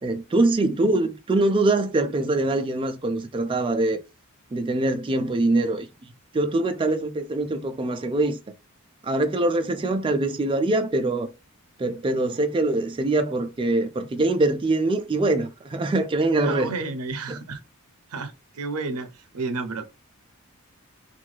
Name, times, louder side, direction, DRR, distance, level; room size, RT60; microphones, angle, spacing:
voice 1, 0.0-4.0 4.5-5.9 6.3-8.4 9.0-11.3 11.8-16.7 17.3-17.4, right 2 dB, 25° right, 0.3 m, -23 dB
voice 2, 16.4-17.6 18.1-19.8, right 3 dB, 80° right, 0.5 m, -31 dB
2.6 x 2.3 x 3.1 m
head